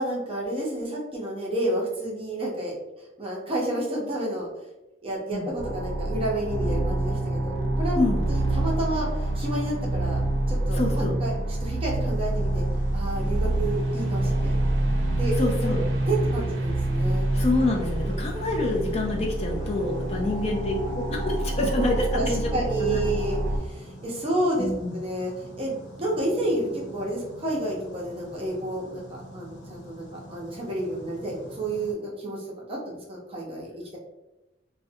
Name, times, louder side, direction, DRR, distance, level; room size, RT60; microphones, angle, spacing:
voice 1, 0.0-4.5 5.0-10.2 10.5-12.7 12.9-14.6 15.2-15.4 15.6-15.8 16.1-17.3 18.5-19.0 20.1-20.9 21.5-34.0, right 1 dB, 30° right, -3 dB, 0.6 m, -30 dB
sound 1, 5.6-23.6, right 1 dB, 90° right, 0.5 m, -27 dB
voice 2, 10.7-11.1 15.4-15.8 17.3-22.5 22.8-23.1 24.6-25.0, left 2 dB, 35° left, 0 dB, 0.3 m, -27 dB
sound 2, 12.0-31.9, equal, 75° left, 0.6 m, -45 dB
2.4 x 2.0 x 2.6 m, 0.98 s
head